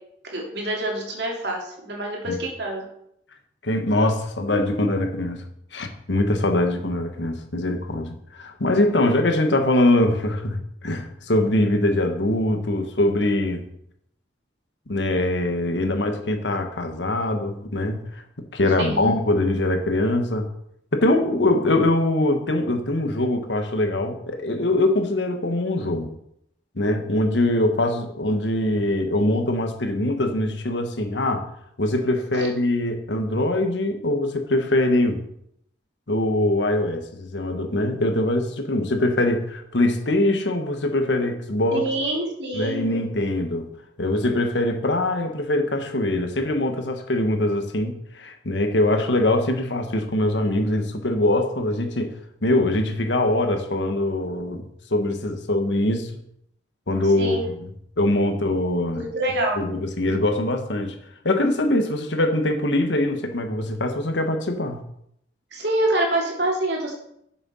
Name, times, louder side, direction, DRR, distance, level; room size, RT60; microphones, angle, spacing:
voice 1, 0.2-2.9 18.8-19.3 32.3-32.5 41.7-43.0 57.0-57.5 58.9-59.6 65.5-66.9, right 1 dB, 65° right, -1 dB, 2.7 m, -26 dB
voice 2, 3.6-5.4 5.7-13.6 14.9-18.0 18.5-20.5 20.9-26.1 26.7-31.5 31.8-35.2 36.1-41.8 42.5-43.7 44.0-52.1 52.4-56.2 56.9-57.7 58.0-59.0 59.6-60.9 61.2-64.8, left 1 dB, 80° left, 6 dB, 1.4 m, -23 dB
7.4 x 6.8 x 5.6 m, 0.74 s
head